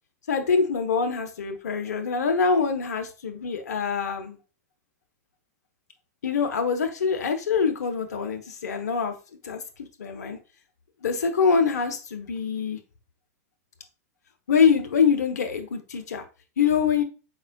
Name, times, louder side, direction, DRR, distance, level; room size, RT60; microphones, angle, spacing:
voice 1, 0.3-4.4 6.2-9.1 9.4-10.4 11.0-12.8 14.5-16.2 16.6-17.0, left 6 dB, 80° left, 0.8 m, -24 dB
4.4 x 4.2 x 2.2 m
hypercardioid pair, 100°, 9 cm